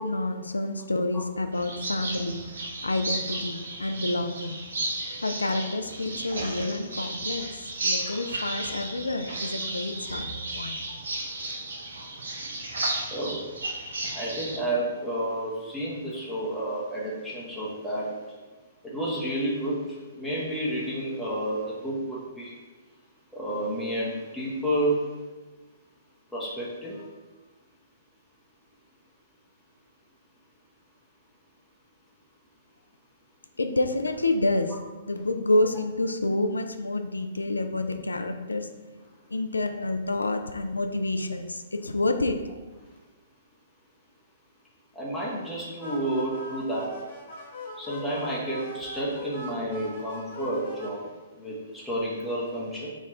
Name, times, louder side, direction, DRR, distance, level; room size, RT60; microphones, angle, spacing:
voice 1, 0.0-2.4 2.8-4.6 5.2-7.5 7.8-10.8 33.6-34.8 35.1-38.7 39.3-42.4, left 2 dB, 75° left, 7 dB, 0.3 m, -28 dB
sound 1, 1.5-14.6, right 2 dB, 60° right, 0.7 m, -34 dB
voice 2, 13.1-13.4 14.1-18.1 18.8-22.5 23.3-25.0 26.3-27.0 45.0-46.9 47.8-51.1 51.4-52.9, right 1 dB, ahead, -7 dB, 0.7 m, -30 dB
sound 2, 45.8-50.9, left 1 dB, 50° left, 1.1 m, -41 dB
4.2 x 2.4 x 4.2 m, 1.3 s
figure-of-eight pair, 120°, 0 cm